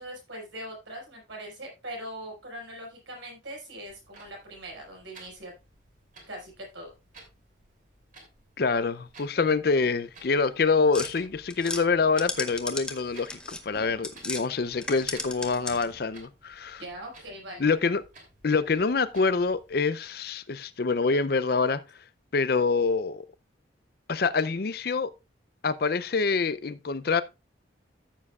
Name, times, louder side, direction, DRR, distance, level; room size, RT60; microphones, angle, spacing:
voice 1, 0.0-5.5 6.3-6.9 16.8-17.7, right 1 dB, 85° right, 5.3 m, -41 dB
Clock, 3.8-19.8, right 2 dB, 45° right, 3.0 m, -56 dB
voice 2, 8.6-16.8 17.6-18.0 18.4-21.8 22.3-23.3 24.1-25.1 25.6-27.2, left 4 dB, 55° left, 0.5 m, -26 dB
sound 1, 10.9-14.4 14.8-16.0, left 2 dB, 5° left, 0.7 m, -36 dB
14.0 x 7.4 x 2.4 m
head